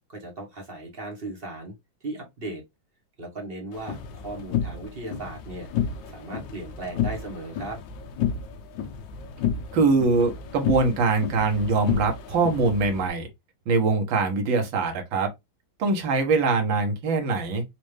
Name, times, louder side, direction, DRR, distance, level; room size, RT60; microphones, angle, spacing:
voice 1, 0.1-1.7 2.0-2.6 3.2-5.7 6.1-7.8, right 2 dB, 35° right, 1.2 m, -37 dB
sound 1, 3.7-13.1, left 8 dB, 70° left, 1.4 m, -31 dB
voice 2, 9.7-13.3 13.7-15.3 15.8-17.6, right 3 dB, 70° right, 1.8 m, -23 dB
4.3 x 2.5 x 3.2 m
omnidirectional pair, 2.2 m